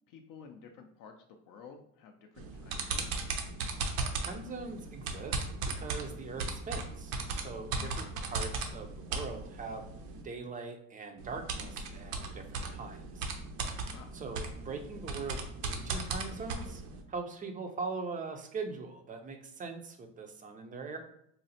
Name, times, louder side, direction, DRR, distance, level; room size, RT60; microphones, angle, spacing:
voice 1, 0.1-1.1 1.5-3.4 7.7-8.0 13.9-14.1, left 6 dB, 55° left, 4 dB, 0.5 m, -52 dB
sound 1, 2.4-10.2 11.2-17.0, right 3 dB, 70° right, 0.7 m, -37 dB
voice 2, 4.3-9.8 10.2-13.3 14.1-16.8 17.1-21.0, right 4 dB, 20° right, 5 dB, 0.4 m, -41 dB
4.0 x 2.0 x 2.7 m, 0.71 s
supercardioid pair, 100°, 38 cm